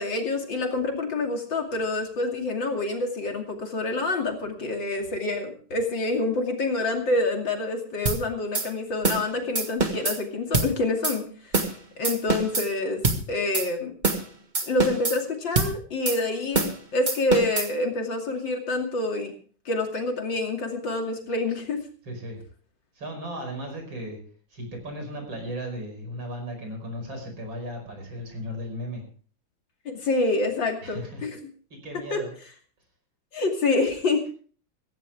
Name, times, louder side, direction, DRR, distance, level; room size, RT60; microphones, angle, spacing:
voice 1, 0.0-11.7 12.0-13.0 13.3-13.9 14.7-19.3 19.6-21.8 29.8-31.4 32.1-32.2 33.3-34.2, left 2 dB, 65° left, 2 dB, 3.3 m, -27 dB
sound 1, 8.1-8.2 8.5-8.7 9.0-9.3 9.6-10.2 10.5-10.7 11.0-11.2 11.5-11.8 12.0-12.7 13.0-13.2 13.5-13.7 14.0-14.3 14.5-15.2 15.6-15.7 16.1-16.2 16.5-16.8 17.1-17.7, right 3 dB, 25° right, 1.6 m, -24 dB
voice 2, 22.0-22.4 22.9-24.2 24.5-29.0 30.8-31.3 31.7-32.3, equal, 70° right, 4 dB, 6.0 m, -36 dB
16.5 x 16.0 x 3.5 m, 0.42 s
omnidirectional pair, 2.2 m